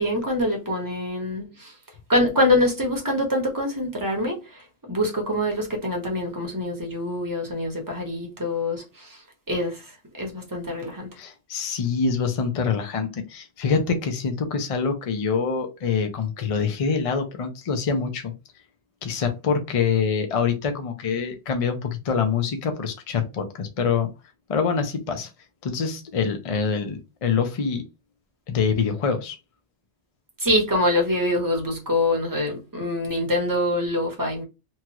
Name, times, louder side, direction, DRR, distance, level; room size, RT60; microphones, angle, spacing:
voice 1, 0.0-1.7 2.1-4.4 4.9-9.2 9.5-9.8 10.2-11.1 30.4-34.4, left 1 dB, 20° right, 0.8 m, -24 dB
voice 2, 11.2-18.3 19.0-24.1 24.5-25.3 25.6-27.9 28.5-29.4, left 5 dB, 50° left, 0.4 m, -25 dB
3.0 x 2.3 x 2.9 m
omnidirectional pair, 1.2 m